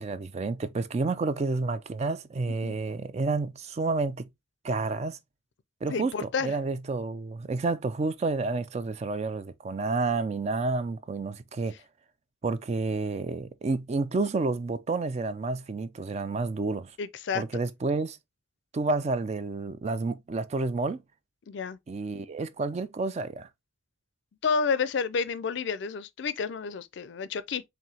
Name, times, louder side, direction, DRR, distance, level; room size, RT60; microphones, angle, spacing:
voice 1, 0.0-4.3 4.6-5.2 5.8-11.8 12.4-16.9 17.3-18.2 18.7-21.0 21.9-23.5, right 3 dB, 35° right, 0.3 m, -30 dB
voice 2, 5.9-6.5 17.0-17.4 21.5-21.8 24.4-27.6, left 5 dB, 60° left, 0.4 m, -30 dB
4.8 x 3.1 x 2.7 m
head